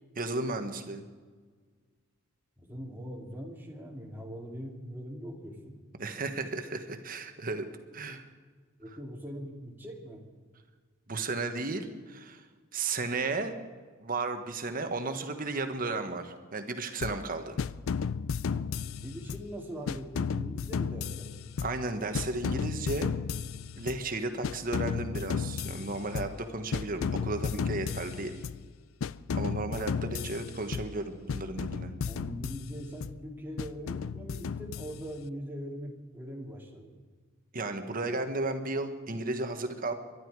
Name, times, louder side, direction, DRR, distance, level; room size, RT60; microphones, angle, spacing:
voice 1, 0.2-1.0 6.0-7.7 7.9-8.2 11.1-12.4 12.7-13.5 14.0-17.6 21.6-23.1 23.8-28.4 29.3-31.9 37.5-39.9, right 3 dB, 45° right, 7 dB, 1.4 m, -34 dB
voice 2, 2.6-5.7 8.8-10.2 18.5-21.3 32.0-36.9, equal, 10° right, 0 dB, 2.4 m, -41 dB
sound 1, 17.0-17.3 17.6-19.5 19.9-21.9 22.1-24.1 24.4-26.4 26.7-28.7 29.0-31.0 31.3-33.2 33.6-35.2, left 6 dB, 75° left, 0.4 m, -34 dB
23.0 x 11.5 x 4.8 m, 1.5 s
head